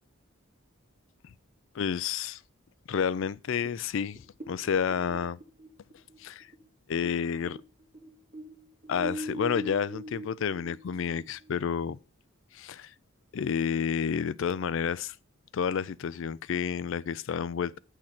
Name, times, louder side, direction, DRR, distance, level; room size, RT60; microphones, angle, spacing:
voice 1, 1.7-2.4 2.9-5.4 6.2-6.5 6.9-7.6 8.9-12.0 12.5-12.9 13.3-15.2 15.5-17.8, left 7 dB, 60° left, 0.3 m, -30 dB
sound 1, 3.6-7.2 7.4-11.6, equal, 40° right, 2.9 m, -41 dB
7.5 x 6.4 x 5.8 m
head